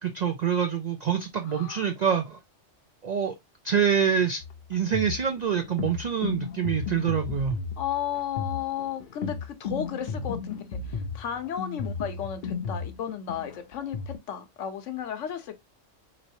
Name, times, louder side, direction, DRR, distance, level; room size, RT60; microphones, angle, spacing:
voice 1, 0.0-2.4 3.0-3.3 3.6-4.4 4.7-7.6, right 7 dB, 60° right, 0.4 m, -26 dB
voice 2, 1.5-1.9 7.8-15.6, left 9 dB, 80° left, 1.1 m, -34 dB
sound 1, 4.4-14.2, left 5 dB, 55° left, 0.7 m, -34 dB
4.0 x 3.1 x 2.6 m
omnidirectional pair, 1.2 m